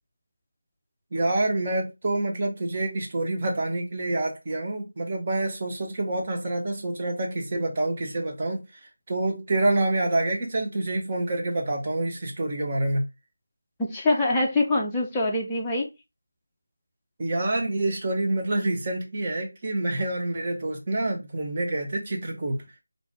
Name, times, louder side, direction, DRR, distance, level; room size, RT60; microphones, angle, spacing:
voice 1, 1.1-8.6 9.1-13.0 17.2-22.6, right 2 dB, 30° right, 1.0 m, -27 dB
voice 2, 13.8-15.9, left 2 dB, 10° left, 0.6 m, -24 dB
3.4 x 2.6 x 3.5 m
figure-of-eight pair, 165°, 0 cm